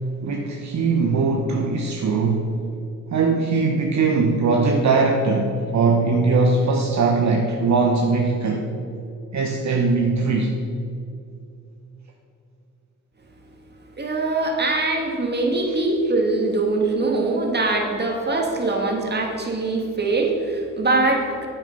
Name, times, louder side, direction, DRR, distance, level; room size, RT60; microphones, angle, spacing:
voice 1, 0.2-2.5 3.1-8.7 9.3-10.6, right 4 dB, 55° right, 1 dB, 1.0 m, -20 dB
voice 2, 14.0-21.5, right 2 dB, 30° right, 1 dB, 2.1 m, -22 dB
9.0 x 8.3 x 5.4 m, 2.6 s
cardioid pair, 75°, 33 cm